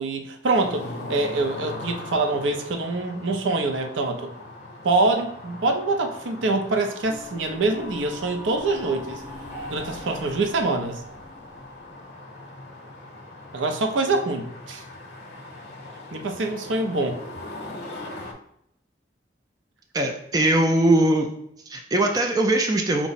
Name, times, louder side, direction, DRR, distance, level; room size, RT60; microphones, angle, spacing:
voice 1, 0.0-4.3 4.8-9.2 9.7-11.0 13.5-14.8 16.1-17.2, right 2 dB, 85° right, 5 dB, 0.5 m, -25 dB
sound 1, 0.5-18.3, left 2 dB, 55° left, 0.7 m, -40 dB
sound 2, 7.0-12.0, left 1 dB, 40° right, 1.6 m, -41 dB
voice 2, 19.9-21.3 21.7-23.1, right 1 dB, 20° right, 3 dB, 0.3 m, -21 dB
4.6 x 2.0 x 4.0 m, 0.72 s
head